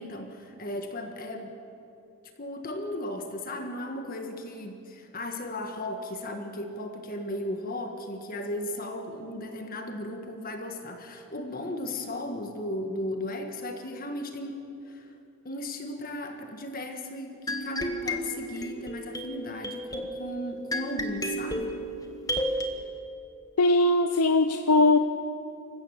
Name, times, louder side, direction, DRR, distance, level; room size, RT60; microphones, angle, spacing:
voice 1, 0.0-1.6 2.4-15.1 15.4-21.8, left 1 dB, 40° left, 4 dB, 1.5 m, -36 dB
sound 1, 17.5-22.7, equal, 15° left, 1.3 m, -32 dB
voice 2, 23.6-25.0, left 2 dB, 90° left, 7 dB, 0.7 m, -20 dB
26.5 x 15.5 x 7.2 m, 2.8 s
head